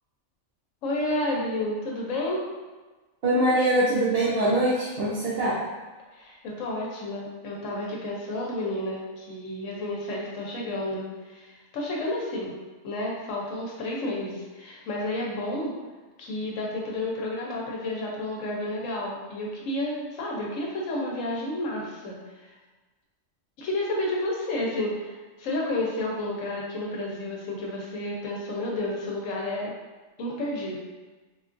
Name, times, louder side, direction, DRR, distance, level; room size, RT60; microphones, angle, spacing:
voice 1, 0.8-2.4 6.1-12.5 12.8-15.7 16.2-22.5 23.6-29.7 30.2-30.8, left 1 dB, 75° left, -2 dB, 1.1 m, -31 dB
voice 2, 3.2-5.6, right 1 dB, 55° right, -8 dB, 0.7 m, -23 dB
3.6 x 2.4 x 2.5 m, 1.3 s
omnidirectional pair, 1.4 m